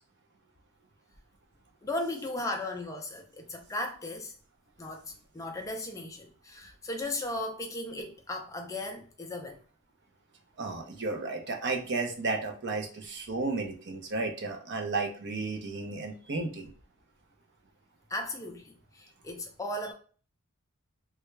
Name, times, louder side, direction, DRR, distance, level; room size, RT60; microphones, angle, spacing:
voice 1, 1.8-4.3 4.8-9.6 18.1-19.9, left 1 dB, 15° left, 0.4 m, -36 dB
voice 2, 10.6-16.7, right 3 dB, 50° right, 0.7 m, -33 dB
3.4 x 2.3 x 3.1 m
head